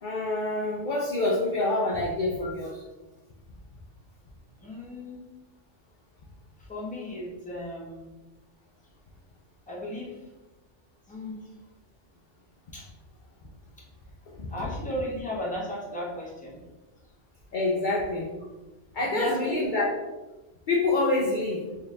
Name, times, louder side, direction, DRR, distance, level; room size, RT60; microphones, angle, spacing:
voice 1, 0.0-2.8 14.3-14.7 17.5-18.3 18.9-19.9 20.7-21.7, left 2 dB, 55° left, -3 dB, 0.6 m, -27 dB
voice 2, 2.4-2.7 4.6-5.3 6.7-8.2 9.7-10.2 11.1-11.4 12.7-12.9 14.5-16.6 19.1-19.6, equal, 5° left, -5 dB, 0.8 m, -35 dB
3.8 x 2.6 x 3.3 m, 1.1 s
omnidirectional pair, 1.2 m